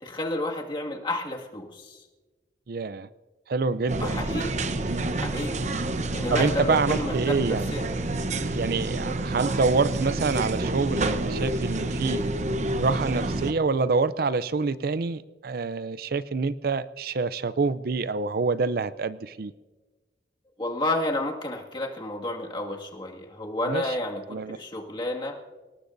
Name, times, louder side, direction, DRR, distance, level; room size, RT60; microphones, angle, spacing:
voice 1, 0.0-2.0 4.0-4.5 5.2-5.6 6.1-7.1 7.5-7.8 20.6-24.2 24.5-25.4, left 1 dB, 25° left, 0 dB, 2.0 m, -30 dB
voice 2, 2.7-3.1 3.5-4.1 4.9-5.0 6.3-7.7 8.5-12.2 12.8-19.5 23.7-24.0 24.3-24.6, right 4 dB, 55° right, 15 dB, 0.5 m, -26 dB
sound 1, 3.9-13.5, right 2 dB, 40° right, 0.8 m, -28 dB
28.0 x 18.5 x 2.6 m, 1.3 s
head